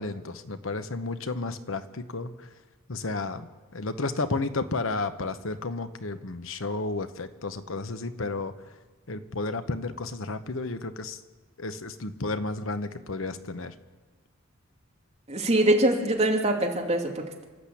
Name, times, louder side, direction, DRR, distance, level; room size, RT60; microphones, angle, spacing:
voice 1, 0.0-2.5 2.9-8.5 9.1-11.2 11.6-13.7, left 3 dB, 75° left, 10 dB, 1.1 m, -32 dB
voice 2, 15.3-17.4, right 1 dB, 30° right, 1 dB, 2.9 m, -24 dB
27.0 x 12.0 x 8.6 m, 1.3 s
head